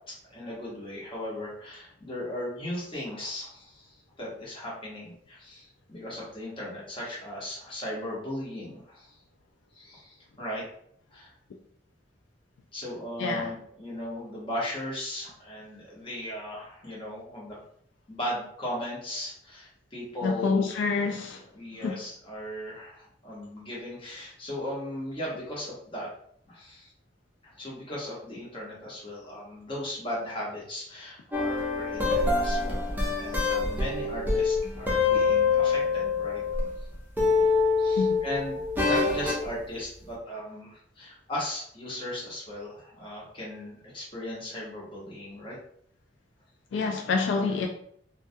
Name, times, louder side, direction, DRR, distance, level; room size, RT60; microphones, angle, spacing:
voice 1, 0.1-9.2 9.7-10.6 11.1-11.3 12.7-17.5 18.1-20.6 21.5-26.1 26.5-26.9 27.4-36.4 37.8-45.6, left 1 dB, 30° left, 0.9 m, -37 dB
voice 2, 20.2-21.4 21.8-22.0 38.0-38.2 46.7-47.7, left 4 dB, 80° left, 0.3 m, -27 dB
sound 1, 31.3-36.8 37.2-39.5, left 4 dB, 10° right, 0.5 m, -25 dB
2.2 x 2.2 x 2.6 m
head